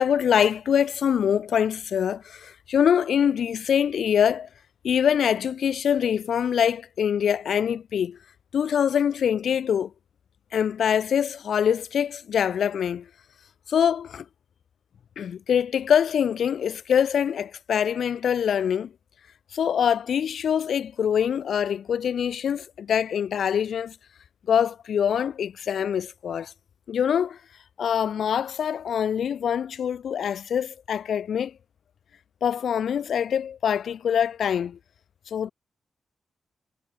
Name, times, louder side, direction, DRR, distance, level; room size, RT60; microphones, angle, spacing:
voice 1, 0.0-4.5 4.8-8.2 8.5-9.9 10.5-13.1 13.7-14.2 15.2-18.9 19.5-23.9 24.5-26.5 26.9-27.4 27.8-31.5 32.4-34.8 35.3-35.5, left 8 dB, 75° left, 0.7 m, -24 dB
wide cardioid pair, 135°, 0 cm